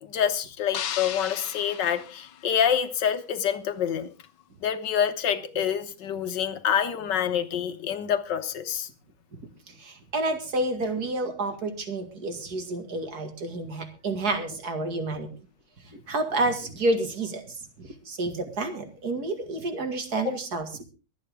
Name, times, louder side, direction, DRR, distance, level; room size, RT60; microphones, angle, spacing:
voice 1, 0.0-4.1 4.6-8.9 20.2-20.3, left 8 dB, 65° left, 10 dB, 1.6 m, -27 dB
sound 1, 0.7-3.0, left 10 dB, 85° left, 1.6 m, -36 dB
voice 2, 9.7-15.3 15.9-20.8, right 2 dB, 50° right, 7 dB, 2.5 m, -30 dB
23.0 x 9.0 x 3.6 m, 0.33 s
omnidirectional pair, 2.1 m